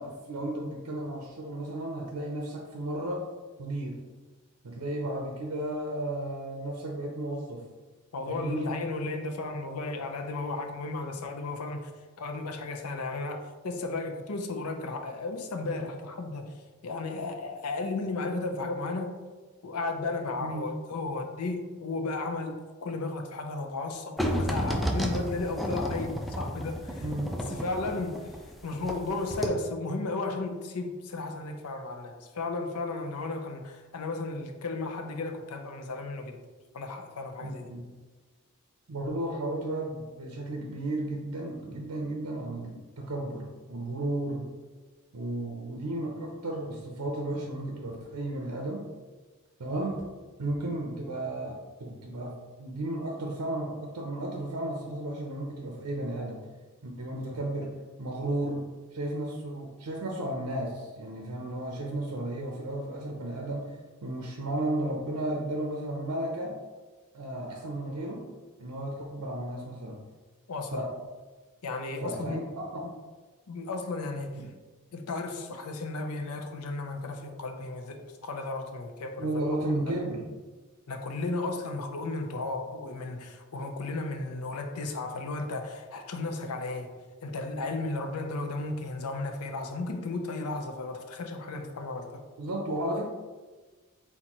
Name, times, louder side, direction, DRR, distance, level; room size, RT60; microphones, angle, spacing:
voice 1, 0.0-3.3 3.6-4.1 4.6-7.6 8.3-8.8 20.4-20.6 27.0-27.4 37.4-37.8 38.9-44.5 45.1-48.8 49.6-50.0 50.4-56.4 56.8-66.6 67.1-68.3 68.6-70.0 70.7-71.0 72.0-72.9 74.3-74.5 79.2-80.3 92.4-93.1, right 1 dB, 85° right, 0 dB, 0.6 m, -34 dB
voice 2, 8.1-11.9 12.2-19.2 19.6-27.0 27.5-36.4 36.7-37.7 70.5-70.8 71.6-72.5 72.8-72.9 73.5-74.5 74.9-79.3 80.9-86.9 87.2-92.2, left 3 dB, 80° left, 5 dB, 0.6 m, -34 dB
sound 1, 24.2-29.0 29.3-29.5, equal, ahead, 0.4 m, -31 dB
4.4 x 3.8 x 3.0 m, 1.3 s
head